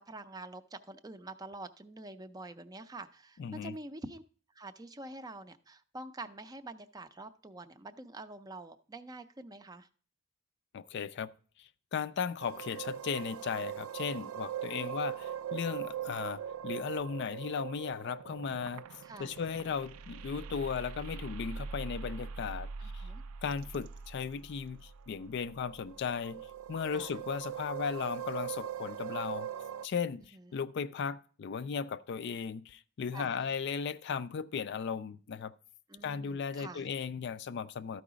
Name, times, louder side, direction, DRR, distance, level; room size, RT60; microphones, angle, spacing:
voice 1, 0.0-4.2 4.5-9.9 14.7-14.9 19.0-19.4 22.8-23.2 26.9-27.1 30.3-30.5 33.1-33.4 35.9-36.9, right 2 dB, 20° right, 0.4 m, -46 dB
voice 2, 3.4-3.8 10.7-11.3 11.6-18.8 19.2-23.0 23.4-29.5 29.8-35.5 36.0-38.0, left 6 dB, 55° left, 0.4 m, -36 dB
sound 1, 12.4-29.9, right 8 dB, 90° right, 0.4 m, -41 dB
12.5 x 4.7 x 5.0 m
head